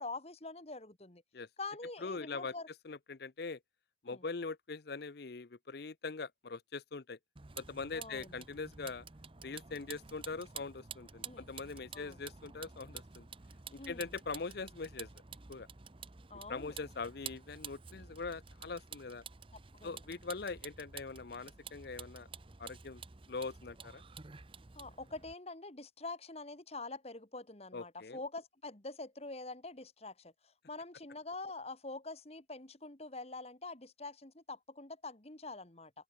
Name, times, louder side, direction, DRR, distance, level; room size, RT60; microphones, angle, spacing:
voice 1, 0.0-1.2 1.6-2.7 4.1-4.2 7.9-8.3 11.2-11.5 11.9-12.2 13.8-14.1 16.3-16.7 19.5-20.0 24.7-35.9, left 3 dB, 35° left, 1.7 m, -45 dB
voice 2, 2.0-2.5 2.8-3.6 4.0-7.2 7.6-9.1 9.4-13.3 13.7-15.1 15.5-15.7 16.5-19.2 19.8-22.3 22.6-23.0 23.3-24.0 27.7-28.2, left 4 dB, 55° left, 0.6 m, -42 dB
Vehicle, 7.4-25.3, right 6 dB, 25° right, 0.8 m, -50 dB
open air
head